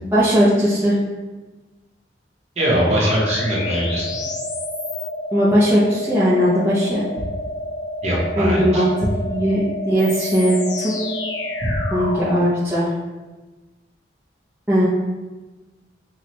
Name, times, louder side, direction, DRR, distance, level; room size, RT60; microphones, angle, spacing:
voice 1, 0.1-1.0 5.3-7.0 8.4-8.9 9.2-10.6 10.8-11.0 11.9-12.9 14.7-14.9, equal, 10° right, -10 dB, 0.6 m, -18 dB
sound 1, 2.6-12.5, left 1 dB, 85° left, 0.7 m, -29 dB
voice 2, 2.6-4.1 8.0-8.8 11.6-11.7, equal, 35° right, -5 dB, 1.0 m, -21 dB
5.9 x 2.3 x 3.0 m, 1.2 s
head